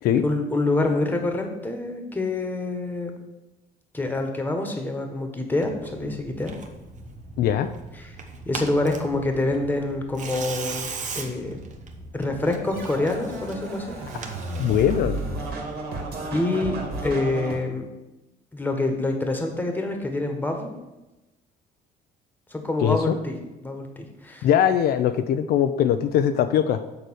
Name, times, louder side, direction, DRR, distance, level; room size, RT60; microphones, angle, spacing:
voice 1, 0.2-3.1 3.9-6.5 8.0-8.1 8.4-10.9 11.1-11.6 12.1-13.9 16.3-16.8 17.0-17.9 18.5-20.7 22.5-23.4 23.6-24.5, left 2 dB, 10° left, 4 dB, 1.4 m, -26 dB
Tearing, 5.6-15.2, right 4 dB, 45° right, 1.1 m, -39 dB
voice 2, 7.4-7.7 14.6-15.2 22.8-23.2 24.4-26.8, left 9 dB, 70° left, 8 dB, 0.5 m, -21 dB
Scratching (performance technique), 12.7-17.6, right 2 dB, 70° right, 2.3 m, -33 dB
6.7 x 4.8 x 6.4 m, 1.0 s
cardioid pair, 110°, 17 cm